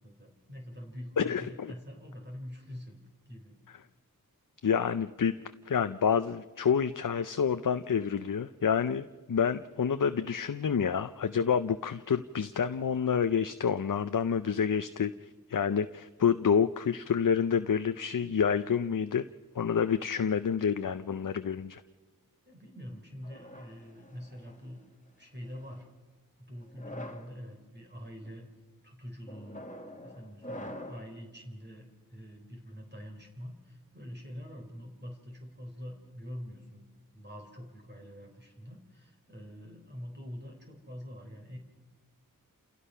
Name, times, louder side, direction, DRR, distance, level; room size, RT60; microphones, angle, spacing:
voice 1, 0.0-3.6 22.5-24.8 25.2-25.9 26.4-28.5 28.8-29.6 30.0-36.9 37.1-41.6, equal, 30° right, 2 dB, 3.7 m, -45 dB
voice 2, 1.2-1.7 4.6-5.4 5.7-19.2 19.5-21.8, left 7 dB, 65° left, 11 dB, 0.6 m, -28 dB
sound 1, 23.2-24.6 25.4-25.8 26.6-27.3 28.0-28.3 29.3-31.1, left 1 dB, 20° left, 2.0 m, -45 dB
28.5 x 16.5 x 5.6 m, 1.3 s
wide cardioid pair, 45°, 35 cm